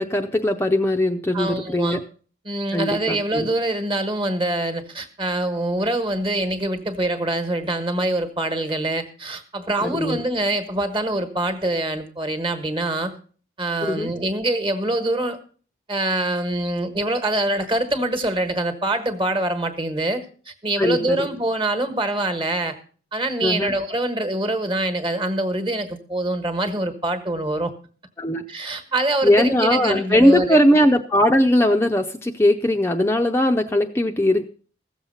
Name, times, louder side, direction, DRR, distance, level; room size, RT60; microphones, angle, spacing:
voice 1, 0.0-2.0 2.7-3.5 9.8-10.2 13.8-14.1 20.8-21.3 23.4-23.7 28.2-28.4 29.2-34.5, left 1 dB, 15° left, 4 dB, 0.5 m, -19 dB
voice 2, 1.3-2.0 2.4-13.1 13.6-15.4 15.9-22.8 23.1-27.7 28.5-30.6, right 1 dB, 30° right, 9 dB, 1.3 m, -24 dB
15.0 x 7.2 x 5.6 m, 0.42 s
head